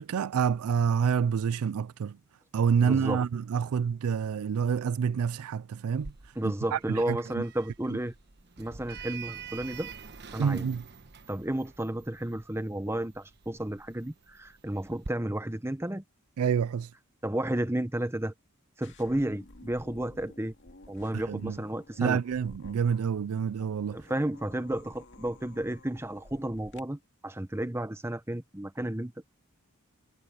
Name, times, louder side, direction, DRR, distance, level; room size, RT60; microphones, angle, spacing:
voice 1, 0.0-2.2 2.5-6.1 6.4-7.4 7.9-8.0 10.4-10.8 16.4-16.9 21.3-21.6 22.0-24.0, right 7 dB, 75° right, 0.4 m, -28 dB
voice 2, 2.8-3.2 6.4-8.1 8.6-9.9 10.3-10.7 11.3-16.0 17.2-18.3 18.8-20.5 20.9-22.2 23.9-29.1, right 1 dB, 10° right, 0.9 m, -32 dB
Sliding door, 6.0-15.1, right 5 dB, 50° right, 1.2 m, -46 dB
sound 1, 18.8-26.8, left 2 dB, 55° left, 2.5 m, -53 dB
head